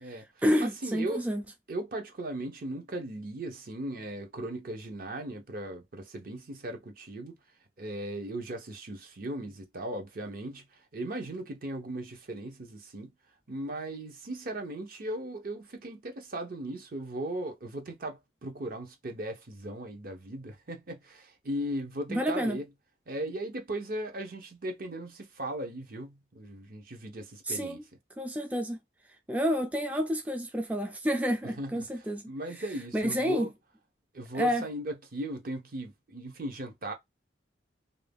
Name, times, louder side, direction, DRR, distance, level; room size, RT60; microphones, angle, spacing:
voice 1, 0.1-1.4 22.1-22.6 27.4-27.8 28.2-28.8 29.3-32.2 32.9-33.5 34.3-34.6, equal, 10° right, 0.3 m, -29 dB
voice 2, 0.6-1.3 1.7-7.3 7.8-13.1 13.5-22.6 23.1-27.8 31.6-31.9 32.3-33.5 34.1-36.9, right 1 dB, 55° right, 0.7 m, -37 dB
2.6 x 2.2 x 3.3 m
head